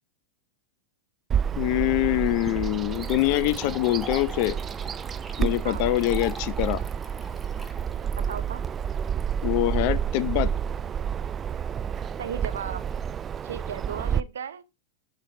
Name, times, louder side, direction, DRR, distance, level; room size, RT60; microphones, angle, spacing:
Bird vocalization bird call bird song, 1.3-14.2, right 8 dB, 25° right, 0.4 m, -30 dB
voice 1, 1.6-4.6 5.4-6.8 9.4-10.5, left 16 dB, 55° left, 0.7 m, -24 dB
sound 1, 2.3-2.4 2.9-9.2, right 1 dB, 5° right, 1.3 m, -44 dB
voice 2, 8.2-8.6 12.2-12.9 13.4-14.6, right 8 dB, 80° right, 0.8 m, -35 dB
9.9 x 3.4 x 5.1 m
hypercardioid pair, 100°, 0 cm